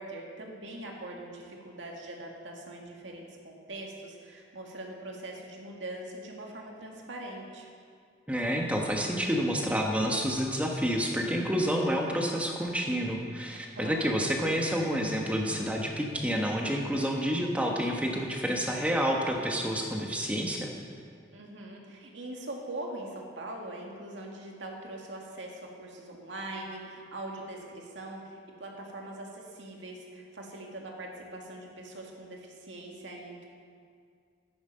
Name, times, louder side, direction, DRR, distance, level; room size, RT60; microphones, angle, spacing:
voice 1, 0.0-7.7 13.8-14.1 21.3-33.5, right 1 dB, 85° right, 0 dB, 2.1 m, -42 dB
voice 2, 8.3-20.7, equal, 5° right, 0 dB, 1.2 m, -29 dB
13.5 x 10.0 x 5.6 m, 2.2 s
head